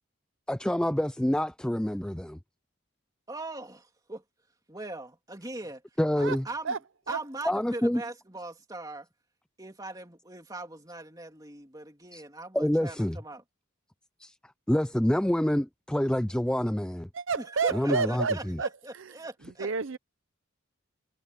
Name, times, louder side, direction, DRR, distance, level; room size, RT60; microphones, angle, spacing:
voice 1, 0.5-2.4 6.0-6.5 7.4-8.0 12.1-12.2 12.5-13.2 14.2-14.3 14.7-17.1 17.7-18.6, equal, 5° left, 0.3 m, -27 dB
voice 2, 3.3-4.2 4.7-5.8 6.2-6.8 7.1-9.1 9.6-13.4 17.4-19.7, right 2 dB, 15° right, 3.1 m, -40 dB
voice 3, 17.1-18.7 19.6-20.0, right 5 dB, 65° right, 0.7 m, -29 dB
head